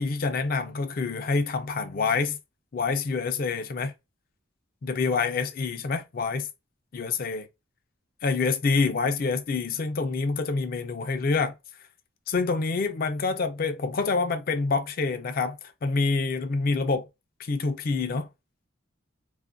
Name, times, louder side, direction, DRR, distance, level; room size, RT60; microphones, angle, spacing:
voice 1, 0.0-2.4 2.7-3.9 4.8-6.5 6.9-7.5 8.2-11.5 12.3-17.1 17.4-18.3, left 4 dB, 45° left, 0.4 m, -27 dB
2.4 x 2.1 x 2.4 m
head